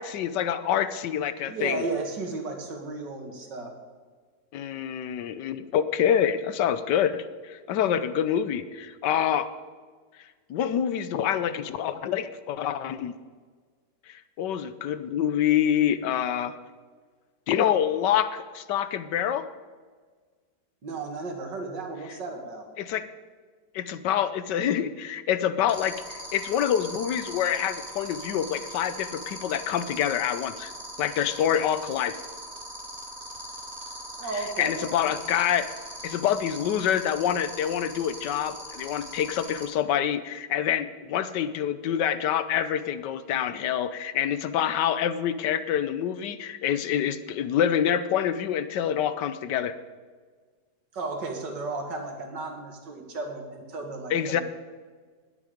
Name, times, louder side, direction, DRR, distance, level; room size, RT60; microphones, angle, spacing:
voice 1, 0.0-1.8 4.5-9.5 10.5-13.1 14.1-16.5 17.5-19.5 22.8-23.1 23.7-30.7 31.0-32.2 34.6-35.7 36.0-49.7 54.1-54.4, left 9 dB, 80° left, 13 dB, 1.3 m, -26 dB
voice 2, 1.5-3.7 20.8-22.7 34.2-35.1 50.9-54.4, right 3 dB, 75° right, 3 dB, 2.6 m, -34 dB
sound 1, 25.7-39.6, right 1 dB, 25° right, 3.1 m, -40 dB
19.5 x 8.9 x 5.1 m, 1.5 s
omnidirectional pair, 1.9 m